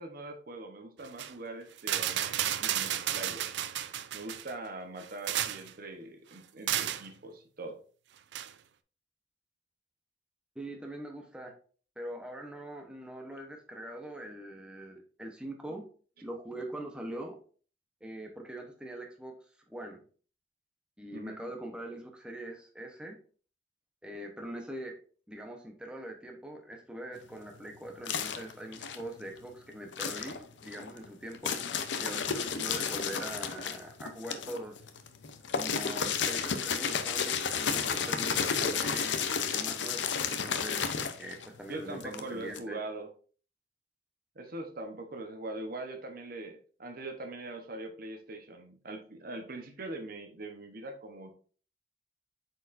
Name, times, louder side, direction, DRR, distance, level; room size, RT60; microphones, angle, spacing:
voice 1, 0.0-3.5 4.1-7.8 21.1-21.4 41.7-43.1 44.3-51.3, right 2 dB, 55° right, 5 dB, 1.0 m, -42 dB
sound 1, 1.0-1.3 1.8-4.5 5.0-5.7 6.7-7.1 8.3-8.5, right 11 dB, 70° right, 0.4 m, -32 dB
voice 2, 10.5-11.5 12.0-15.8 16.2-17.4 18.0-19.3 19.7-20.0 21.0-23.1 24.0-24.9 25.3-34.8 35.5-40.9 41.2-42.8, right 1 dB, 5° right, 2 dB, 0.9 m, -42 dB
sound 2, 27.1-29.5 29.9-42.6, left 6 dB, 85° left, 0.7 m, -33 dB
7.9 x 4.7 x 2.6 m, 0.41 s
head